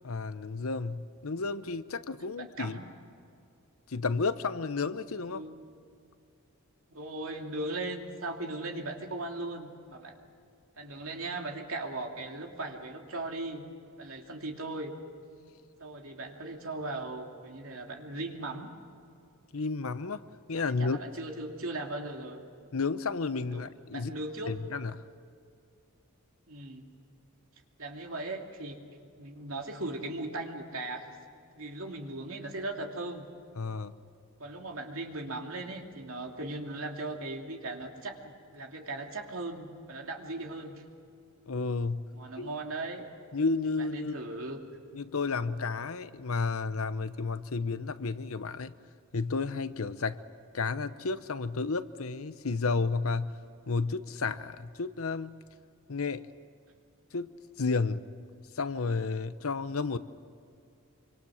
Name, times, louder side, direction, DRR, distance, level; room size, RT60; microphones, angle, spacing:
voice 1, 0.0-2.8 3.9-5.4 19.5-20.2 20.5-21.0 22.7-24.1 24.5-25.1 33.6-34.0 41.5-42.5 43.3-44.2 44.9-48.7 49.1-50.2 50.5-53.4 53.7-55.4 55.9-56.3 57.1-58.0 58.5-60.0, left 4 dB, 70° left, 13 dB, 0.8 m, -32 dB
voice 2, 2.4-2.9 5.3-5.6 6.9-10.2 10.8-13.6 14.0-14.9 15.8-18.7 20.8-22.4 23.5-24.5 26.5-26.9 27.8-28.8 29.2-31.1 31.6-33.3 34.4-40.8 42.1-43.1 43.9-44.6, right 2 dB, 70° right, 2 dB, 2.7 m, -38 dB
26.0 x 25.0 x 6.4 m, 2.4 s
head